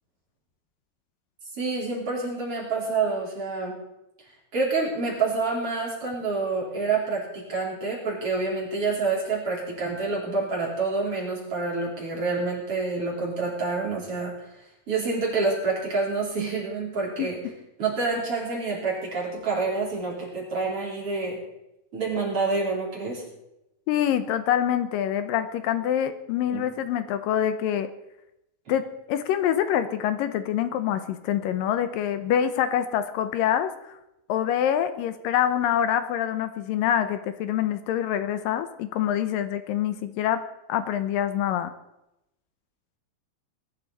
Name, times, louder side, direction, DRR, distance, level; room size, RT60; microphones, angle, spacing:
voice 1, 1.6-3.8 4.5-14.3 14.9-17.4 17.8-21.4 21.9-23.2 26.5-26.7, right 3 dB, 40° right, -4 dB, 5.0 m, -27 dB
voice 2, 23.9-27.9 28.7-28.8 29.1-34.0 34.3-40.4 40.7-41.7, left 10 dB, 80° left, 10 dB, 2.4 m, -25 dB
20.5 x 12.0 x 4.1 m, 0.88 s
omnidirectional pair, 4.1 m